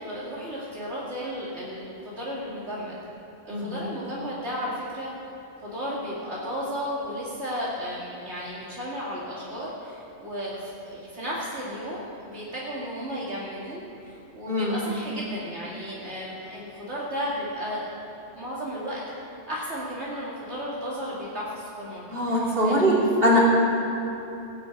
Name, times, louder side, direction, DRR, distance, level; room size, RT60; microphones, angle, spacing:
voice 1, 0.0-2.9 3.4-5.1 5.6-17.9 18.4-23.0, equal, 75° right, -7 dB, 2.6 m, -34 dB
voice 2, 3.5-3.8 14.5-14.9 22.1-22.9 23.2-23.4, equal, 55° right, -6 dB, 3.2 m, -22 dB
19.0 x 6.3 x 8.3 m, 3.0 s
omnidirectional pair, 1.2 m